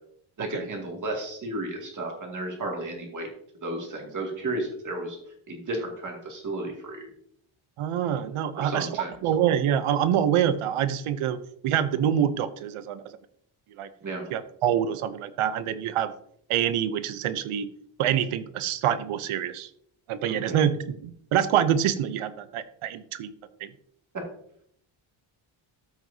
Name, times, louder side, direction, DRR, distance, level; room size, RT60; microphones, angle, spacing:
voice 1, 0.4-3.3 3.6-5.2 5.5-7.1 8.6-9.1 14.0-14.2 20.3-20.7, right 2 dB, 40° right, 0 dB, 2.3 m, -33 dB
voice 2, 7.8-8.9 9.2-11.4 11.6-13.0 13.8-13.9 14.3-16.1 16.5-17.7 18.0-19.7 20.1-23.3 23.6-23.7, right 9 dB, 85° right, 13 dB, 0.8 m, -26 dB
13.5 x 6.2 x 2.7 m, 0.68 s
wide cardioid pair, 170°, 49 cm